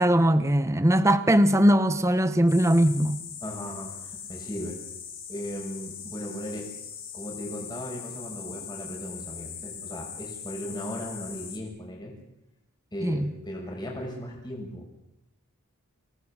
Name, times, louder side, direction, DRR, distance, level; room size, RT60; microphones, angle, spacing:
voice 1, 0.0-3.2 13.0-13.3, equal, 15° right, 1.1 m, -21 dB
sound 1, 2.5-11.6, left 7 dB, 40° left, 5.0 m, -40 dB
voice 2, 3.4-4.8 5.3-6.7 7.1-12.1 12.9-15.0, equal, 20° left, 6.0 m, -37 dB
29.0 x 18.5 x 7.4 m
head